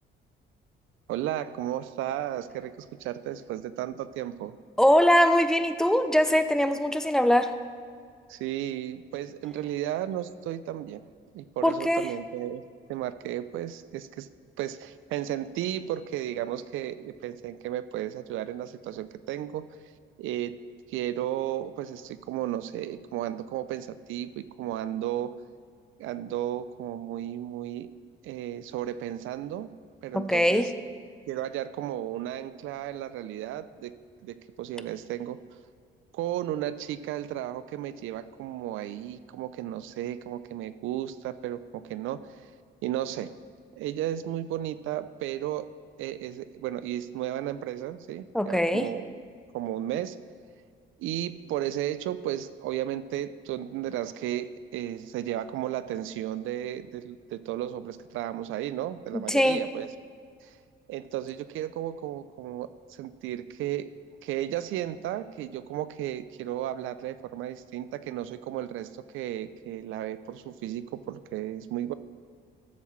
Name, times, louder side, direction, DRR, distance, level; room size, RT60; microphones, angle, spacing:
voice 1, 1.1-4.6 8.3-11.0 11.3-12.6 12.9-14.3 14.6-19.7 20.2-20.6 20.9-25.3 26.0-27.9 28.2-29.7 30.0-30.7 31.3-33.9 34.2-35.4 36.1-42.2 42.8-43.3 43.7-45.7 46.0-49.0 49.5-50.2 51.0-59.9 60.4-60.6 60.9-63.9 64.2-71.9, right 12 dB, 85° right, 14 dB, 0.4 m, -34 dB
voice 2, 4.8-7.5 11.6-12.1 30.1-30.7 48.3-48.9 59.1-59.6, equal, 5° left, 9 dB, 0.5 m, -22 dB
13.0 x 7.2 x 3.1 m, 2.1 s
cardioid pair, 90°, 20 cm